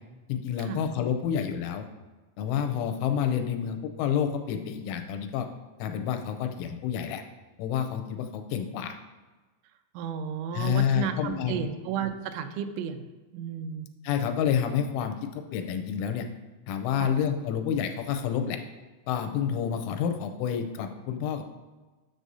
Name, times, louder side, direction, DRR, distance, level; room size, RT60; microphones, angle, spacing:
voice 1, 0.3-1.9 2.4-5.5 5.8-7.2 7.6-9.0 10.5-11.6 14.0-16.3 16.7-18.6 19.1-21.4, left 8 dB, 90° left, 6 dB, 3.1 m, -29 dB
voice 2, 9.9-13.1 13.3-13.9 17.0-17.1, right 8 dB, 85° right, 7 dB, 3.0 m, -33 dB
9.8 x 6.3 x 2.7 m, 1.2 s
omnidirectional pair, 5.5 m